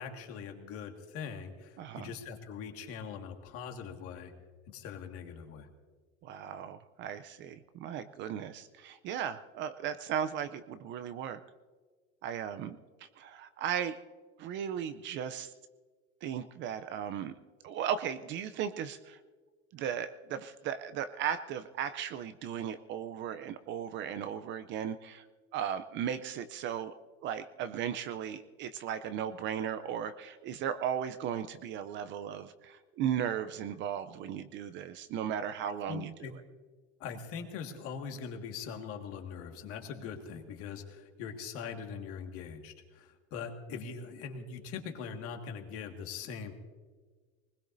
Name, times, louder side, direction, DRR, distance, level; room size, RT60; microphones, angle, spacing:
voice 1, 0.0-4.3 4.7-5.7 35.9-36.3 37.0-46.5, left 6 dB, 45° left, 4 dB, 1.8 m, -42 dB
voice 2, 1.8-2.1 6.2-11.4 12.2-14.0 14.4-15.5 16.2-17.3 17.6-19.2 19.7-25.3 25.5-26.9 27.2-36.4, right 9 dB, 35° right, 12 dB, 0.5 m, -36 dB
22.0 x 20.5 x 2.6 m, 1.5 s
supercardioid pair, 145°, 32 cm